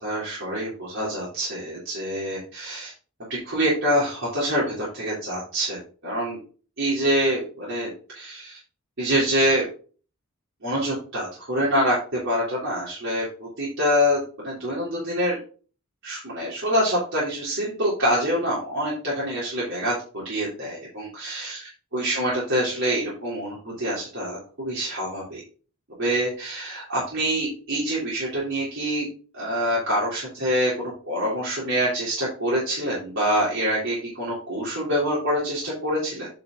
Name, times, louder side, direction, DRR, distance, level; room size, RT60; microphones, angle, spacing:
voice 1, 0.0-2.9 3.4-6.4 6.8-8.6 9.0-9.6 10.6-15.4 16.0-25.4 26.0-29.0 29.3-36.3, equal, 60° right, -7 dB, 3.2 m, -26 dB
8.6 x 5.4 x 3.7 m, 0.39 s
head